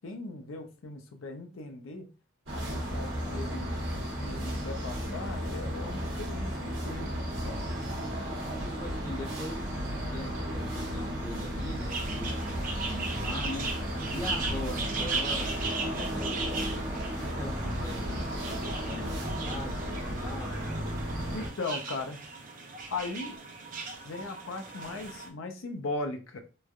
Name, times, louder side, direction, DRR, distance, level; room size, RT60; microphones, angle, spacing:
voice 1, 0.0-2.1 2.5-3.7 4.2-7.7 21.3-22.2 22.9-23.4 24.0-26.4, left 3 dB, 90° left, 0.5 m, -38 dB
sound 1, 2.5-21.5, equal, 65° right, 1.0 m, -34 dB
voice 2, 8.4-13.7 14.1-15.5 15.8-19.7 20.2-20.5, left 1 dB, 20° left, 0.8 m, -41 dB
sound 2, 11.9-25.3, right 4 dB, 45° right, 0.5 m, -38 dB
3.1 x 2.2 x 2.4 m
head